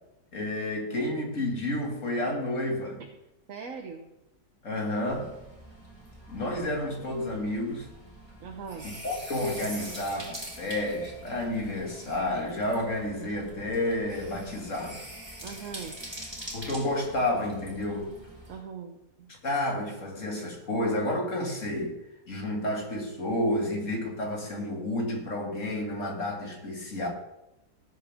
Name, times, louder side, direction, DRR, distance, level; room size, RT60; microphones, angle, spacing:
voice 1, 0.3-3.0 4.6-5.4 6.3-7.9 8.8-15.0 16.5-18.1 19.4-22.0 22.3-27.1, left 1 dB, 45° left, 0 dB, 2.7 m, -30 dB
voice 2, 3.5-4.1 8.4-8.9 15.4-16.0 18.5-19.3, right 6 dB, 55° right, 3 dB, 1.3 m, -40 dB
sound 1, 5.1-18.6, right 1 dB, 15° right, 3.3 m, -44 dB
18.0 x 8.1 x 3.7 m, 0.90 s
omnidirectional pair, 1.8 m